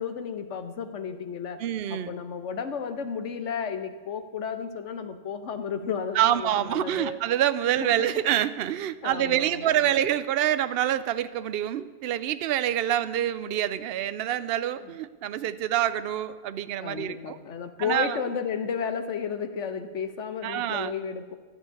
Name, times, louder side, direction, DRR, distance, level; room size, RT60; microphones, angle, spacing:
voice 1, 0.0-1.6 1.9-7.2 7.8-8.2 9.0-9.9 14.8-14.9 16.8-21.4, left 6 dB, 75° left, 9 dB, 1.2 m, -33 dB
voice 2, 1.6-2.1 6.1-17.4 17.8-18.2 20.4-20.9, right 11 dB, 60° right, 14 dB, 0.7 m, -26 dB
12.0 x 6.5 x 9.4 m, 1.4 s
omnidirectional pair, 1.2 m